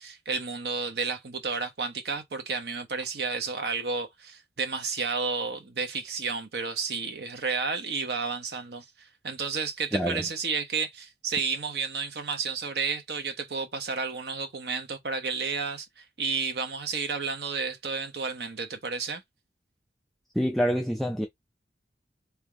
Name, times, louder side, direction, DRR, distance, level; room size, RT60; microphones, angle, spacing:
voice 1, 0.0-19.2, right 5 dB, 65° right, 0.9 m, -31 dB
voice 2, 9.9-10.2 20.4-21.3, equal, ahead, 0.4 m, -26 dB
3.4 x 2.9 x 3.5 m
head